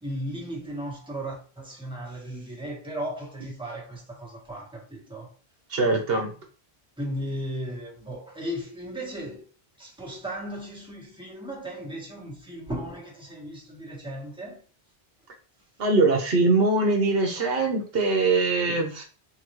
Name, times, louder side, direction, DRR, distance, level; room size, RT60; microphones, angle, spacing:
voice 1, 0.0-5.3 7.0-9.5 9.8-14.6, equal, 5° right, 1.2 m, -36 dB
voice 2, 5.7-6.3 15.8-19.0, right 3 dB, 70° right, 1.0 m, -22 dB
3.9 x 2.6 x 3.0 m
omnidirectional pair, 1.1 m